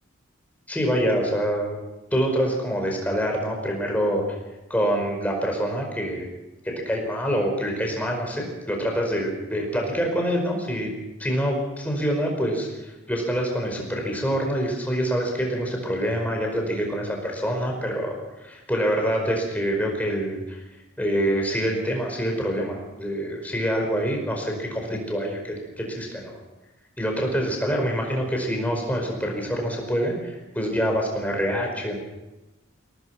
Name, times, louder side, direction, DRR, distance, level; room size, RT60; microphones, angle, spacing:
voice 1, 0.7-1.8 2.1-4.4 4.7-6.2 6.6-10.9 11.2-20.6 21.0-26.3 27.0-32.0, equal, 5° left, 1 dB, 5.1 m, -26 dB
23.5 x 18.0 x 6.1 m, 1.0 s
head